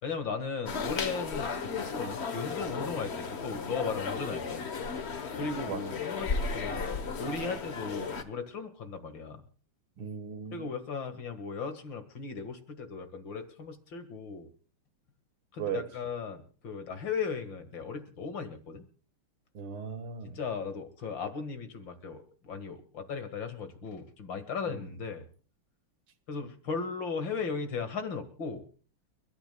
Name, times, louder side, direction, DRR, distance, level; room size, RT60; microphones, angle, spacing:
voice 1, 0.0-4.6 5.3-9.4 10.5-14.5 15.5-18.8 20.2-25.2 26.3-28.7, left 5 dB, 60° left, 2.5 m, -37 dB
Istanbul Spice Bazaar (aka Egyptian Bazaar) ambience, 0.7-8.2, left 5 dB, 40° left, 1.0 m, -35 dB
voice 2, 10.0-10.7 15.6-15.8 19.5-20.4 24.7-24.8, right 7 dB, 75° right, 2.5 m, -37 dB
30.0 x 13.0 x 2.3 m
omnidirectional pair, 2.3 m